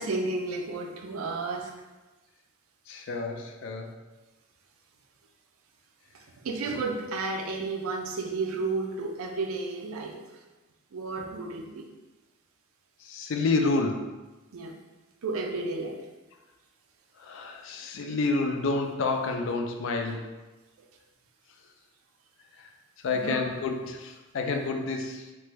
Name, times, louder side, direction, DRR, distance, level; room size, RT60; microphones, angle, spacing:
voice 1, 0.0-1.7 6.1-10.2 10.9-11.9 14.5-14.8 15.2-16.0 20.8-20.9 23.1-23.4, right 3 dB, 80° right, 3 dB, 0.4 m, -32 dB
voice 2, 2.9-4.0 13.0-14.1 17.2-20.3 22.6-22.7 23.0-25.3, left 3 dB, 60° left, 4 dB, 0.3 m, -29 dB
3.2 x 2.1 x 2.9 m, 1.1 s
head